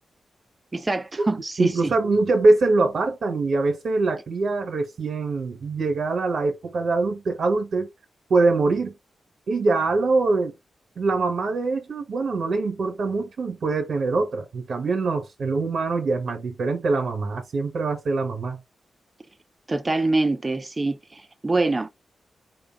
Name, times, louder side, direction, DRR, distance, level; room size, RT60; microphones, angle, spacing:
voice 1, 0.7-1.9 19.7-21.9, right 2 dB, 25° right, 0.6 m, -24 dB
voice 2, 1.6-7.9 8.3-8.9 9.5-10.5 11.0-18.6, right 3 dB, 65° right, 1.3 m, -23 dB
4.8 x 2.3 x 4.6 m
wide cardioid pair, 105°, 0 cm